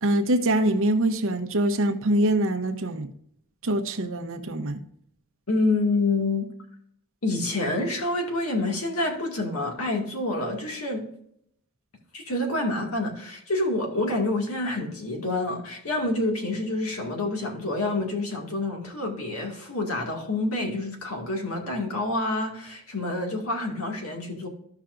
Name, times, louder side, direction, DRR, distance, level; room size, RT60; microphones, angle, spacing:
voice 1, 0.0-3.1 3.6-4.8, right 1 dB, 65° right, 7 dB, 0.9 m, -24 dB
voice 2, 5.5-6.5 7.2-11.1 12.1-24.5, left 2 dB, 85° left, 1 dB, 2.1 m, -27 dB
13.5 x 5.8 x 2.5 m, 0.71 s
head